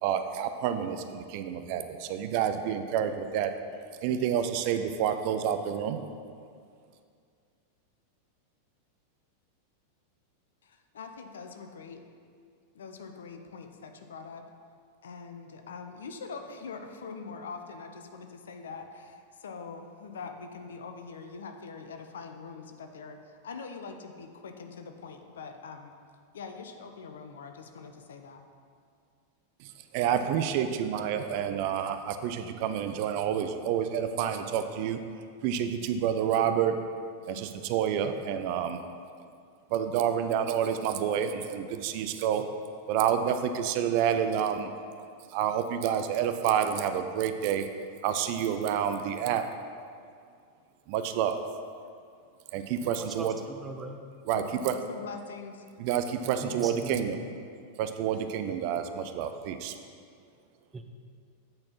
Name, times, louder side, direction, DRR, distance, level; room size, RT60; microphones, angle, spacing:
voice 1, 0.0-3.5 4.0-6.0 29.6-35.0 35.4-36.8 37.3-38.8 39.7-42.4 42.9-44.7 45.3-47.7 48.0-49.4 50.9-51.4 52.5-53.4 54.3-54.8 55.8-57.2 57.8-59.7, right 9 dB, 45° right, 8 dB, 0.5 m, -29 dB
voice 2, 10.6-12.0 12.7-14.4 15.0-25.9 26.3-28.4 54.3-55.6, left 5 dB, 65° left, 6 dB, 0.6 m, -43 dB
voice 3, 52.8-54.0 56.4-57.0 60.7-60.8, right 3 dB, 15° right, 4 dB, 0.7 m, -40 dB
8.6 x 4.2 x 5.7 m, 2.3 s
figure-of-eight pair, 90°, 0 cm